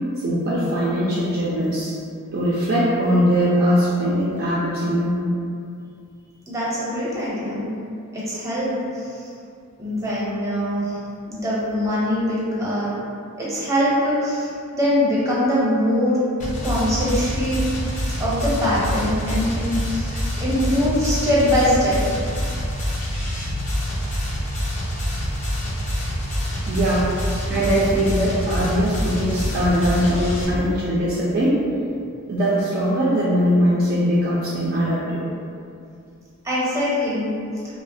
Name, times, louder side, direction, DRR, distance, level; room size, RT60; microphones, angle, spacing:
voice 1, 0.2-1.9 2.3-5.2 26.7-27.1 27.5-31.6 32.3-35.2, equal, 40° right, -7 dB, 0.3 m, -21 dB
voice 2, 6.5-7.7 8.1-9.2 9.8-11.0 11.3-12.9 13.4-16.2 16.6-17.6 18.2-22.0 36.4-37.3, equal, 15° right, -8 dB, 0.7 m, -22 dB
sound 1, 16.4-30.4, equal, 35° left, 0.5 m, -26 dB
3.1 x 2.0 x 2.6 m, 2.4 s
head